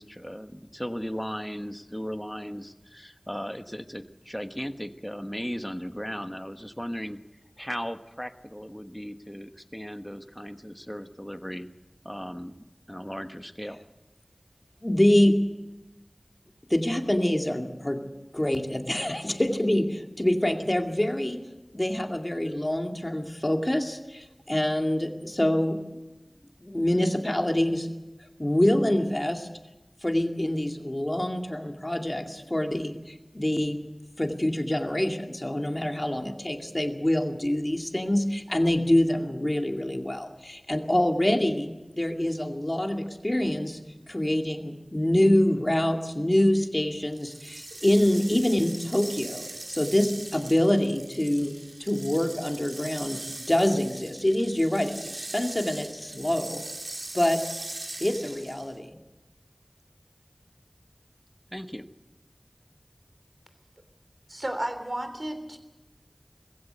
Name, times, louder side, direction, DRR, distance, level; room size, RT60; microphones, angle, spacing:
voice 1, 0.0-7.2 7.6-11.7 12.0-12.6 12.9-13.8 61.5-61.9, equal, 10° left, 9 dB, 1.2 m, -36 dB
voice 2, 14.8-15.4 16.7-18.0 18.3-21.4 21.7-25.8 26.6-27.9 28.4-29.5 30.0-33.8 34.2-43.8 44.1-51.5 51.8-56.6 57.1-57.4 58.0-59.0, left 1 dB, 30° left, 4 dB, 2.3 m, -25 dB
sound 1, 47.1-58.8, right 2 dB, 80° right, 2.2 m, -40 dB
voice 3, 64.3-65.6, right 1 dB, 45° right, 7 dB, 3.2 m, -32 dB
21.0 x 15.5 x 8.0 m, 1.1 s
wide cardioid pair, 45°, 0 cm